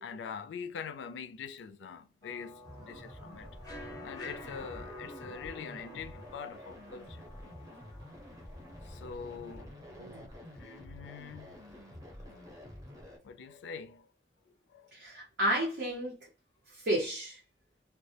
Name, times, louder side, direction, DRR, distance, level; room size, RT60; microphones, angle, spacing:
voice 1, 0.0-3.5 4.0-7.2 8.8-9.8 10.6-11.6 12.2-12.4 13.2-14.1 14.7-14.9, left 6 dB, 80° left, 0.3 m, -44 dB
sound 1, 2.2-9.6, left 1 dB, 20° left, 0.6 m, -50 dB
sound 2, 2.6-13.2, left 1 dB, 20° right, 0.6 m, -49 dB
voice 2, 9.9-10.3 14.9-16.3 16.7-17.4, right 1 dB, 75° right, 0.7 m, -32 dB
2.2 x 2.0 x 2.7 m
head